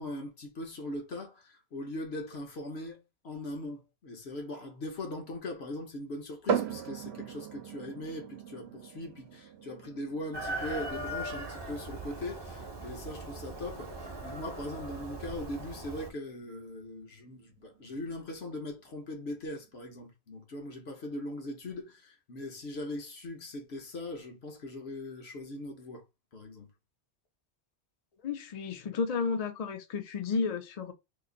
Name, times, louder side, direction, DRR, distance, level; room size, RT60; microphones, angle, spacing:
voice 1, 0.0-26.0 26.3-26.7, left 1 dB, 70° left, 1.2 m, -40 dB
sound 1, 6.5-20.0, right 8 dB, 75° right, 0.8 m, -41 dB
Chicken rooster, 10.3-16.1, right 1 dB, 25° right, 0.7 m, -40 dB
voice 2, 28.2-30.9, left 5 dB, 45° left, 0.5 m, -32 dB
3.0 x 2.5 x 3.8 m
omnidirectional pair, 1.1 m